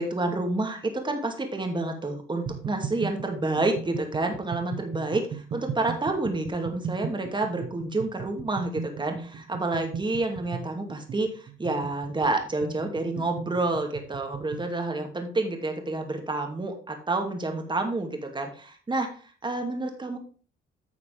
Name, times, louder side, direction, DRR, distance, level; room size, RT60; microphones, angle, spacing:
voice 1, 0.0-20.2, right 2 dB, 25° right, 4 dB, 2.4 m, -29 dB
sound 1, 2.5-14.7, right 6 dB, 60° right, 1.3 m, -37 dB
10.5 x 6.6 x 3.5 m, 0.40 s
cardioid pair, 90°, 20 cm